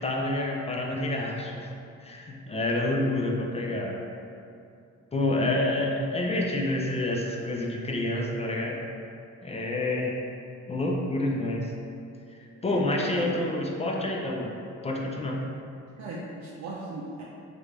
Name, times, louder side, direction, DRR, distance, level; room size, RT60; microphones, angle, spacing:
voice 1, 0.0-1.7 2.0-4.0 5.1-8.8 9.4-10.2 10.7-11.7 12.6-14.5 14.8-15.4, left 1 dB, 20° left, -1 dB, 0.4 m, -28 dB
voice 2, 12.5-13.5 16.0-17.2, right 3 dB, 65° right, -5 dB, 0.5 m, -38 dB
3.2 x 2.6 x 3.2 m, 2.6 s
cardioid pair, 90°, 30 cm